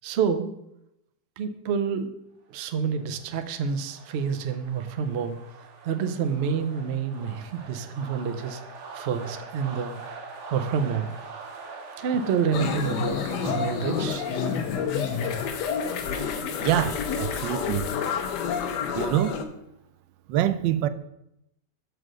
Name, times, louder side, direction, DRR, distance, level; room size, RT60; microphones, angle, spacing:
voice 1, 0.0-0.5 1.4-2.1 2.5-5.4 5.8-8.6 8.9-10.0 10.5-11.1 12.0-14.3 14.6-14.7, right 6 dB, 75° right, 0.6 m, -28 dB
sound 1, 2.7-19.4, right 4 dB, 50° right, 1.0 m, -45 dB
sound 2, 12.5-19.4, left 6 dB, 70° left, 1.3 m, -29 dB
voice 2, 16.6-17.9 18.9-19.5 20.3-20.9, right 12 dB, 90° right, 1.3 m, -25 dB
6.4 x 4.7 x 6.1 m
omnidirectional pair, 1.9 m